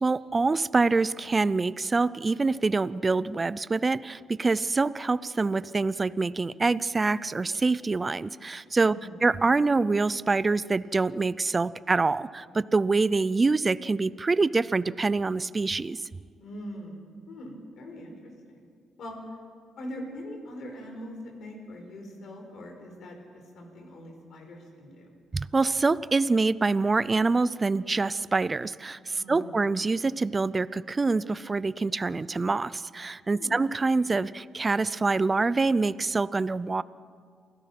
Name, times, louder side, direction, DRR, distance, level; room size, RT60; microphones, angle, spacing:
voice 1, 0.0-8.9 9.2-16.0 25.3-36.8, right 3 dB, 25° right, 18 dB, 0.5 m, -25 dB
voice 2, 8.8-9.3 16.4-17.0 17.3-18.6 19.0-19.2 19.8-25.1 29.1-29.6 33.3-33.6, equal, 65° left, 2 dB, 5.4 m, -42 dB
28.0 x 17.0 x 6.0 m, 2.1 s
cardioid pair, 90°, 0 cm